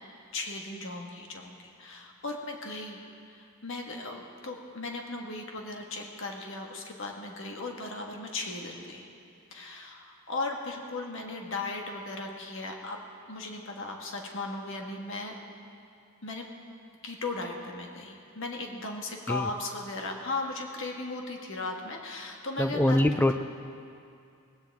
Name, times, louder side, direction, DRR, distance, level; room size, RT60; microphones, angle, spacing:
voice 1, 0.3-3.0 3.3-9.1 9.5-13.0 13.3-15.3 16.2-16.5 17.0-23.2, left 3 dB, 60° left, 1 dB, 1.6 m, -37 dB
voice 2, 22.6-23.3, left 1 dB, 10° left, 8 dB, 0.4 m, -24 dB
18.5 x 16.5 x 3.6 m, 2.5 s
head